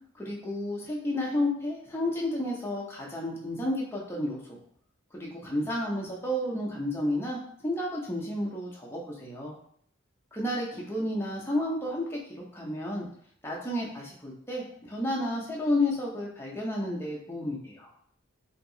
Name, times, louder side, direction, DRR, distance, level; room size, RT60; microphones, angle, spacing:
voice 1, 0.1-4.6 5.1-9.5 10.3-13.1 13.4-17.9, left 1 dB, 10° left, -4 dB, 0.6 m, -31 dB
2.9 x 2.8 x 2.7 m, 0.62 s
head